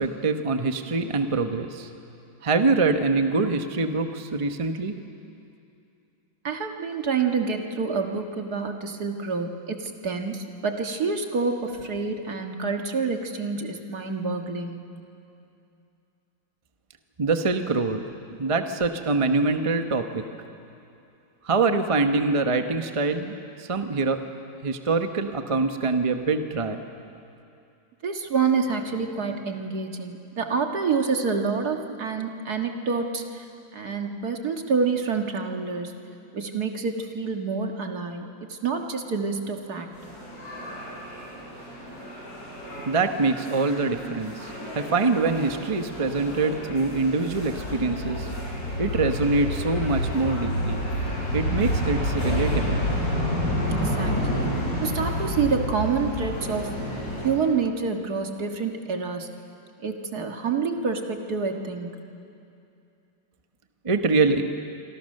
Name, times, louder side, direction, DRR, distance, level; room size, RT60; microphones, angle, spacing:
voice 1, 0.0-1.9 2.4-4.9 17.2-20.2 21.4-24.2 24.6-26.8 42.8-48.3 48.8-50.8 51.3-52.8 63.8-64.4, right 3 dB, 25° right, 7 dB, 0.8 m, -24 dB
voice 2, 6.4-14.8 28.0-33.5 33.7-35.9 36.3-40.0 53.7-54.5 54.8-56.8 57.2-59.3 59.8-62.0, right 5 dB, 55° right, 4 dB, 2.1 m, -27 dB
sound 1, 39.9-57.3, equal, 55° left, 7.5 m, -29 dB
27.0 x 25.5 x 6.6 m, 2.6 s
omnidirectional pair, 2.0 m